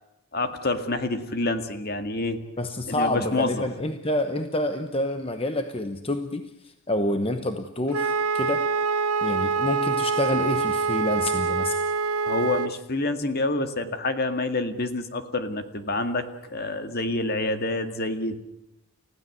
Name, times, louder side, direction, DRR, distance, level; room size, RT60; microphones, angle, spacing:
voice 1, 0.3-2.4 2.9-3.6 12.3-16.2 16.5-18.3, left 2 dB, 45° left, 8 dB, 2.0 m, -27 dB
voice 2, 2.6-8.7 9.2-11.8, left 1 dB, 25° left, 8 dB, 1.0 m, -28 dB
Wind instrument woodwind instrument, 7.9-12.7, right 4 dB, 75° right, 0.8 m, -25 dB
30.0 x 16.0 x 7.8 m, 0.89 s
head